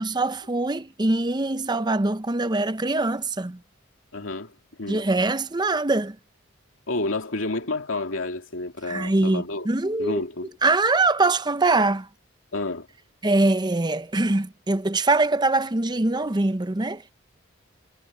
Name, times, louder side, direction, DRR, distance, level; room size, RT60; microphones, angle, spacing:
voice 1, 0.0-3.6 4.9-6.2 8.9-10.2 10.6-12.1 13.2-17.0, right 2 dB, 20° right, 0.7 m, -23 dB
voice 2, 4.1-4.5 4.8-5.0 6.9-9.7 10.0-10.5 12.5-12.9, left 2 dB, 75° left, 2.4 m, -30 dB
head